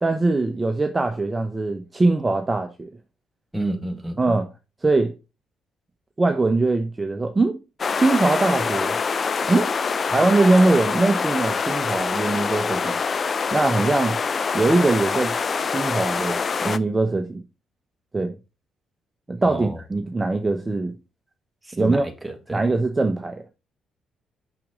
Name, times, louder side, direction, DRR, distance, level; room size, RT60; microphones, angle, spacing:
voice 1, 0.0-2.9 4.2-4.5 4.8-5.1 6.2-7.6 8.0-8.9 9.5-9.7 10.1-13.0 13.5-14.2 14.5-15.3 15.6-17.4 18.1-18.4 19.3-20.9 21.8-22.1 22.5-23.4, right 2 dB, 25° right, 1.0 m, -21 dB
voice 2, 3.5-4.2 19.5-19.8 21.8-22.6, right 1 dB, 5° right, 2.0 m, -29 dB
sound 1, 7.8-16.8, left 5 dB, 45° left, 0.5 m, -25 dB
6.3 x 5.8 x 3.8 m
hypercardioid pair, 50°, 0 cm